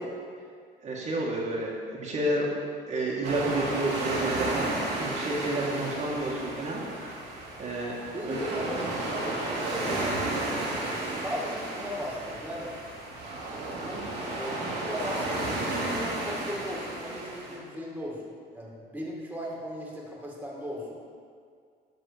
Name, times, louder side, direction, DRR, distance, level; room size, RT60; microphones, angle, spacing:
voice 1, 0.8-2.5 2.9-4.6 4.9-6.8 7.6-8.0 8.3-8.4, right 1 dB, 45° right, -4 dB, 1.9 m, -30 dB
sound 1, 3.2-17.6, right 2 dB, 85° right, 2.6 m, -33 dB
voice 2, 8.1-12.7 13.8-14.1 14.3-21.0, equal, 10° right, -4 dB, 2.1 m, -37 dB
11.0 x 4.1 x 6.8 m, 2.1 s
cardioid pair, 110°, 17 cm